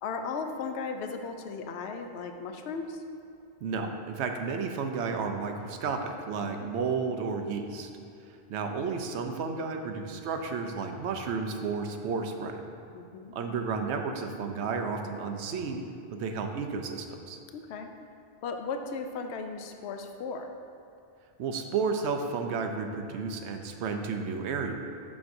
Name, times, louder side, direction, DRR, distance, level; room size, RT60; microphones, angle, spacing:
voice 1, 0.0-3.0 6.4-6.8 12.9-13.3 17.5-17.9 18.4-20.5, left 4 dB, 80° left, 5 dB, 0.8 m, -36 dB
voice 2, 3.6-7.9 8.5-12.6 13.3-15.8 16.1-17.4 21.4-24.7, right 5 dB, 90° right, 5 dB, 0.9 m, -32 dB
7.3 x 6.0 x 2.6 m, 2.6 s
omnidirectional pair, 1.1 m